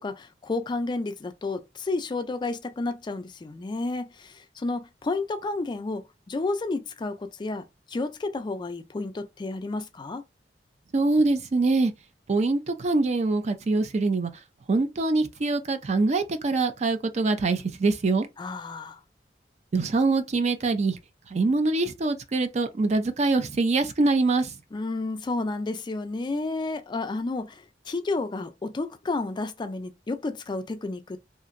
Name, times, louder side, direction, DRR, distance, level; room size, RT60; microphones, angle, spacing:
voice 1, 0.0-10.2 18.4-19.0 24.7-31.2, left 3 dB, 25° left, 0.3 m, -31 dB
voice 2, 10.9-11.9 12.3-14.3 14.7-18.3 19.7-21.0 21.3-24.5, right 3 dB, 40° right, 0.4 m, -24 dB
2.9 x 2.5 x 2.5 m
head